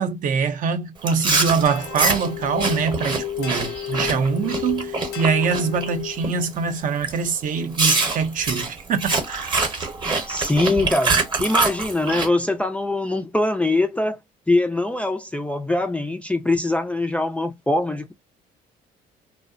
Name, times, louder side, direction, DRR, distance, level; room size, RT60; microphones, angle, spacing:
voice 1, 0.0-9.6, right 5 dB, 50° right, 0.5 m, -24 dB
Chewing mastication, 1.0-5.9 6.2-6.6 7.0-7.2 7.8-12.3, right 3 dB, 30° right, 0.8 m, -24 dB
sound 1, 1.6-6.4, left 10 dB, 80° left, 0.7 m, -32 dB
voice 2, 10.0-14.2 14.5-18.1, left 2 dB, 10° left, 0.3 m, -23 dB
2.6 x 2.1 x 2.4 m
cardioid pair, 110°, 17 cm